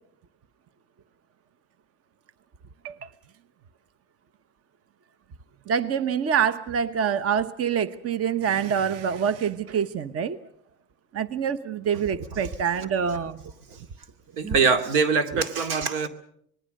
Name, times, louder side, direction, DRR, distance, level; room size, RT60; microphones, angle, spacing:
voice 1, 5.7-10.4 11.1-13.4 15.3-15.4, right 7 dB, 35° right, 15 dB, 1.0 m, -26 dB
voice 2, 14.4-16.1, right 5 dB, 80° right, 9 dB, 2.6 m, -23 dB
26.0 x 20.5 x 6.6 m, 0.70 s
supercardioid pair, 110°, 42 cm